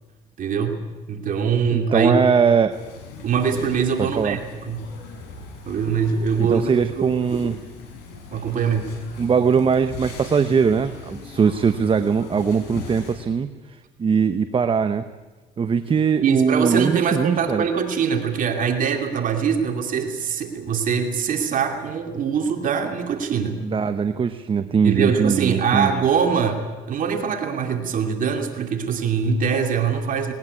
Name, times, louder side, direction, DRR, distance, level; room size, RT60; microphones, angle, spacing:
voice 1, 0.4-0.8 1.1-2.2 3.2-4.8 5.7-7.5 8.3-8.9 16.2-23.6 24.8-30.3, right 6 dB, 55° right, 4 dB, 2.6 m, -23 dB
voice 2, 1.7-2.8 4.2-4.4 6.4-7.6 9.2-13.5 14.0-15.0 15.6-17.6 23.6-25.9, right 6 dB, 30° right, 10 dB, 0.9 m, -20 dB
sound 1, 2.7-13.2, left 4 dB, 85° left, 6.7 m, -40 dB
20.0 x 19.5 x 9.7 m, 1.2 s
cardioid pair, 110°, 17 cm